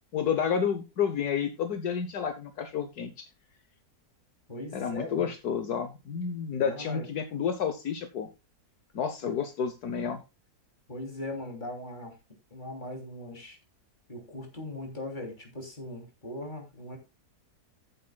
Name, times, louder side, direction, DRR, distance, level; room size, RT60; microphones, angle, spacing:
voice 1, 0.1-3.3 4.7-8.3 8.9-10.2, left 7 dB, 70° left, 8 dB, 1.6 m, -30 dB
voice 2, 4.5-5.3 6.6-7.1 9.2-9.3 10.9-12.2 12.5-13.6 14.1-17.0, left 1 dB, 30° left, 2 dB, 3.2 m, -39 dB
15.0 x 8.0 x 2.3 m, 0.26 s
omnidirectional pair, 1.7 m